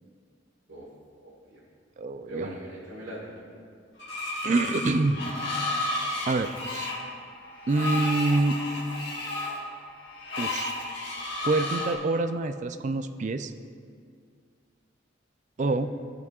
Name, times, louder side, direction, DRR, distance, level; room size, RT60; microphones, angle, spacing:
voice 1, 1.2-1.6 2.2-3.4 15.6-15.9, right 1 dB, 85° right, -8 dB, 1.6 m, -40 dB
voice 2, 2.0-2.6 4.4-5.2 6.3-6.9 7.7-8.6 10.4-10.7 11.4-13.5 15.6-15.9, right 2 dB, 40° right, 9 dB, 0.3 m, -26 dB
Screech, 4.0-12.0, left 2 dB, 60° left, 1.6 m, -32 dB
14.5 x 5.9 x 2.4 m, 2.2 s
head